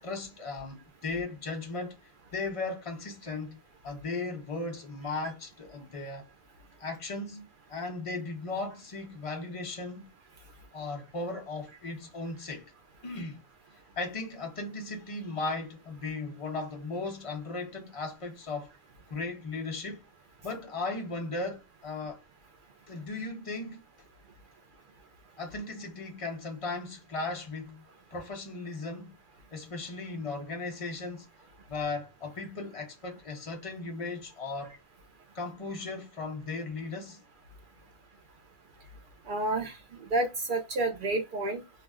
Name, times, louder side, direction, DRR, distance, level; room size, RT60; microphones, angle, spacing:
voice 1, 0.0-2.0 2.3-6.3 6.8-10.1 10.7-12.7 13.0-13.4 14.0-18.7 19.1-20.0 20.4-22.2 22.9-23.8 25.4-27.9 28.1-29.2 29.5-31.3 31.7-34.7 35.3-37.2, left 3 dB, 55° left, 0.4 m, -37 dB
voice 2, 39.3-39.8 40.1-41.6, right 2 dB, 80° right, 0.4 m, -29 dB
2.4 x 2.1 x 3.4 m
omnidirectional pair, 1.5 m